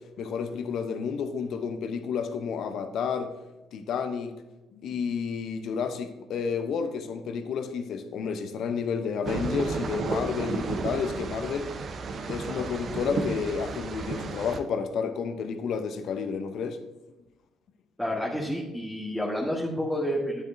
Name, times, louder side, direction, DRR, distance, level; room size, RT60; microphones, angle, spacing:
voice 1, 0.2-3.3 3.7-4.3 4.7-11.7 12.3-16.8, left 6 dB, 65° left, 8 dB, 0.7 m, -31 dB
sound 1, 9.3-14.6, right 4 dB, 50° right, 0.7 m, -33 dB
voice 2, 18.0-20.4, equal, 5° left, -4 dB, 1.5 m, -29 dB
8.6 x 7.7 x 2.6 m, 1.0 s
hypercardioid pair, 50°, 0 cm